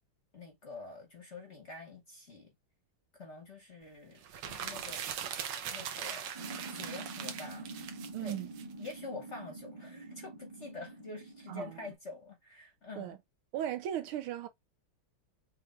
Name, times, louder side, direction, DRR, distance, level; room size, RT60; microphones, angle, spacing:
voice 1, 0.3-2.5 3.2-5.0 5.7-6.3 6.7-7.7 8.2-8.4 8.8-13.2, left 3 dB, 40° left, 1.1 m, -46 dB
sound 1, 4.2-8.9, right 8 dB, 65° right, 1.3 m, -40 dB
sound 2, 6.3-11.9, right 2 dB, 25° right, 0.9 m, -46 dB
voice 2, 8.1-8.5 11.5-11.8 13.0-13.2 13.5-14.5, right 11 dB, 85° right, 1.5 m, -36 dB
5.8 x 3.2 x 2.4 m
omnidirectional pair, 2.4 m